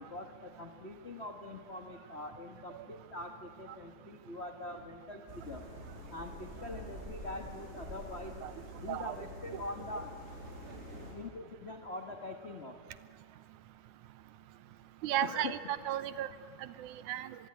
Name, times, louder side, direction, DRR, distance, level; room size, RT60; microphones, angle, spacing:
voice 1, 0.0-5.6 6.1-8.4 8.8-10.1 11.1-12.8 15.2-15.6, left 2 dB, 70° left, 5 dB, 0.6 m, -43 dB
sound 1, 5.3-11.1, equal, 20° right, 5.6 m, -47 dB
voice 2, 15.0-16.3 16.6-17.4, right 12 dB, 85° right, 14 dB, 2.3 m, -35 dB
25.0 x 21.5 x 9.6 m, 2.2 s
omnidirectional pair, 3.4 m